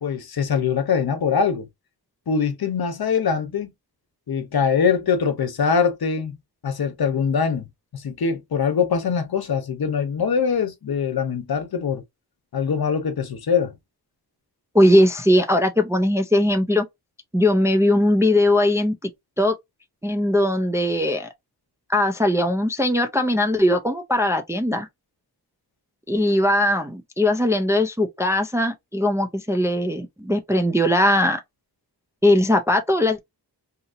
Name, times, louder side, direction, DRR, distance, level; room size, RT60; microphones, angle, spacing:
voice 1, 0.0-1.7 2.3-3.7 4.3-6.4 6.6-7.7 7.9-12.0 12.5-13.7, left 6 dB, 60° left, 0.8 m, -23 dB
voice 2, 14.7-16.8 17.3-19.1 19.4-19.6 20.0-21.3 21.9-24.9 26.1-31.4 32.2-33.2, left 1 dB, 5° right, 0.4 m, -20 dB
2.8 x 2.7 x 2.4 m
wide cardioid pair, 105°, 41 cm